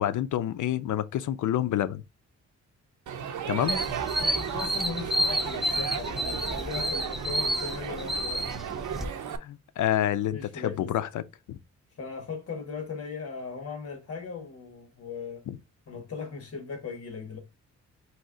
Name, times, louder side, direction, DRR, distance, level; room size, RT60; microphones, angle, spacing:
voice 1, 0.0-2.0 3.5-3.8 9.4-11.2 11.5-11.6 15.5-15.6, left 11 dB, 80° left, 0.5 m, -28 dB
Crowd, 3.1-9.4, right 8 dB, 80° right, 0.7 m, -35 dB
sound 1, 3.7-9.0, equal, ahead, 0.4 m, -30 dB
voice 2, 4.2-8.5 10.3-10.9 12.0-15.4 15.9-17.4, left 5 dB, 50° left, 1.5 m, -38 dB
4.5 x 2.7 x 3.8 m
wide cardioid pair, 165°, 30 cm